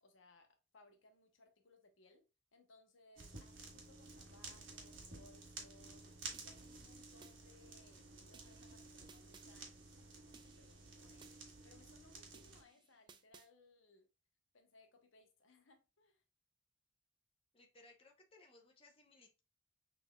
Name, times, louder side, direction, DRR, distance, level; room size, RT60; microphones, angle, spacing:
voice 1, 0.0-2.2 2.5-6.1 6.3-11.3 11.6-14.1 14.5-16.2, left 2 dB, 70° left, 0.9 m, -67 dB
sound 1, 3.2-12.6, right 3 dB, 65° right, 1.5 m, -53 dB
sound 2, 6.3-7.4 8.3-9.5 10.3-11.4 12.3-13.5, right 5 dB, 25° right, 0.3 m, -63 dB
voice 2, 17.5-19.4, left 2 dB, 30° left, 0.8 m, -64 dB
6.4 x 3.4 x 2.3 m
head